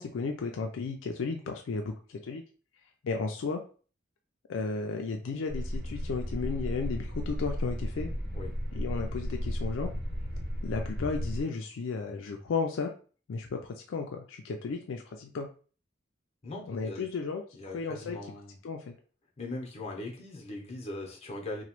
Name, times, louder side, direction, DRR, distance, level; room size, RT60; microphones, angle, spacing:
voice 1, 0.0-2.4 3.0-3.6 4.5-8.1 8.7-9.9 10.6-12.9 13.3-15.5 16.7-17.4 17.7-18.2 18.6-18.9, left 4 dB, 75° left, 3 dB, 0.4 m, -34 dB
sound 1, 5.5-11.4, equal, 55° right, 0.7 m, -34 dB
voice 2, 16.4-17.1 17.5-18.6 19.4-21.6, left 2 dB, 35° left, 0 dB, 0.8 m, -40 dB
3.0 x 2.1 x 3.0 m, 0.39 s
head